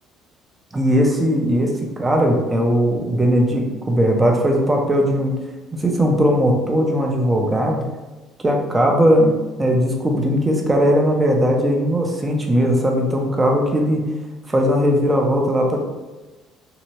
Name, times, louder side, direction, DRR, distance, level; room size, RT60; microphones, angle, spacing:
voice 1, 0.7-5.3 5.7-7.8 8.4-14.0 14.5-15.8, equal, 15° right, 0 dB, 0.5 m, -18 dB
2.7 x 2.1 x 2.9 m, 1.2 s
cardioid pair, 130°, 0 cm